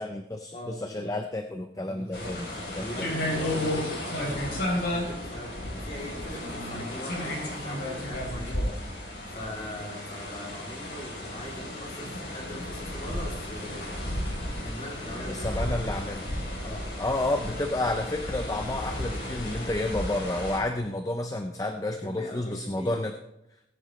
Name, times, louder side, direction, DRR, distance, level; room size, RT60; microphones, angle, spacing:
voice 1, 0.0-2.5 2.7-3.1 15.3-16.2 17.0-23.1, left 1 dB, 20° left, 6 dB, 0.5 m, -30 dB
voice 2, 0.5-1.1 1.9-8.7 9.3-16.0 16.6-16.9 22.0-23.0, left 1 dB, 35° left, -2 dB, 3.1 m, -41 dB
sound 1, 2.1-20.6, left 1 dB, 60° left, 3.8 m, -33 dB
18.0 x 10.0 x 3.2 m, 0.89 s
head